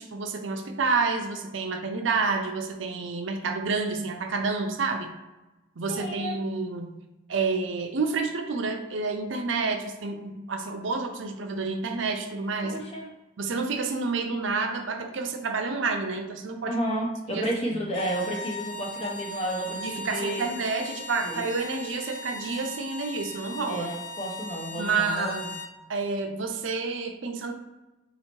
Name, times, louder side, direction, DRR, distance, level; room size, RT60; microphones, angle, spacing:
voice 1, 0.0-5.1 5.8-7.0 7.3-12.8 13.4-16.7 17.3-17.5 17.7-17.8 19.8-23.9 24.8-25.4 25.9-27.5, right 4 dB, 75° right, 4 dB, 0.6 m, -29 dB
voice 2, 5.9-6.4 12.6-13.1 16.7-20.5 21.2-21.4 23.7-25.5, right 1 dB, 30° left, -1 dB, 0.9 m, -32 dB
sound 1, 17.9-25.8, left 1 dB, 70° left, 0.4 m, -38 dB
4.1 x 2.8 x 4.5 m, 1.1 s
head